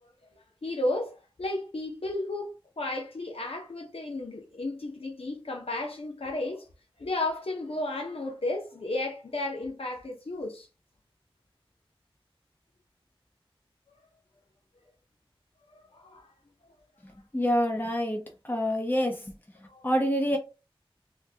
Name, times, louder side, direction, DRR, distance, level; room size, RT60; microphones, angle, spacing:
voice 1, 0.0-2.5 2.8-6.7 7.0-10.7 15.7-16.3 19.7-19.9, left 2 dB, 85° left, 0.6 m, -33 dB
voice 2, 17.0-20.4, equal, 20° left, 0.7 m, -28 dB
3.6 x 2.2 x 2.7 m
wide cardioid pair, 45°, 10 cm